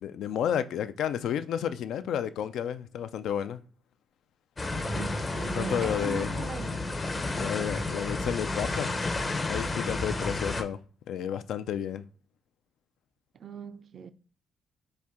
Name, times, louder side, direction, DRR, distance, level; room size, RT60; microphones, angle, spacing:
voice 1, 0.0-3.6 5.5-6.4 7.4-8.9 9.5-10.8 11.1-12.0, left 9 dB, 75° left, 0.3 m, -31 dB
sound 1, 4.6-10.6, left 2 dB, 30° left, 0.6 m, -31 dB
voice 2, 4.9-6.8 13.4-14.1, right 7 dB, 55° right, 0.4 m, -40 dB
4.3 x 2.6 x 3.5 m
cardioid pair, 90°, 0 cm